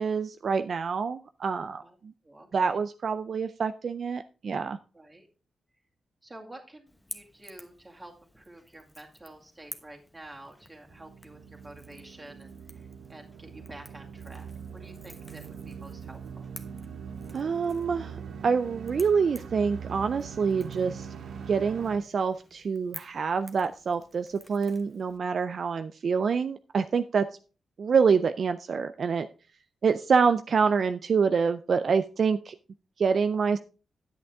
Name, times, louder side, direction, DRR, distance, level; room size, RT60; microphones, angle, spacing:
voice 1, 0.0-2.1 2.5-4.8 17.3-18.2 18.4-21.1 21.5-27.3 27.8-29.3 29.8-32.6 33.0-33.6, right 5 dB, 50° right, 9 dB, 0.4 m, -26 dB
voice 2, 2.2-2.8 4.9-5.3 6.2-16.5, right 1 dB, 15° right, 1 dB, 2.2 m, -49 dB
Crackle / Crack, 6.9-25.2, left 1 dB, 5° left, 1.0 m, -51 dB
sound 1, 10.9-22.0, right 7 dB, 90° right, 1.1 m, -42 dB
10.0 x 8.8 x 3.5 m, 0.35 s
wide cardioid pair, 130°, 0 cm